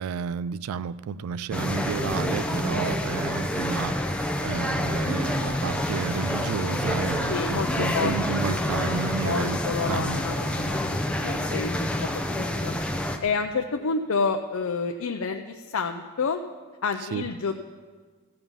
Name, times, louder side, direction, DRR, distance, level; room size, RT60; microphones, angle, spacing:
voice 1, 0.0-10.2 17.1-17.2, right 7 dB, 80° right, 17 dB, 0.3 m, -31 dB
sound 1, 1.5-13.2, left 1 dB, 5° left, 0.5 m, -28 dB
sound 2, 5.3-11.8, left 2 dB, 45° left, 0.7 m, -37 dB
voice 2, 7.3-7.7 7.9-8.1 8.6-8.7 9.2-10.7 11.2-12.7 13.2-16.4 16.8-17.5, left 4 dB, 75° left, 5 dB, 0.5 m, -29 dB
14.5 x 5.4 x 7.2 m, 1.4 s
head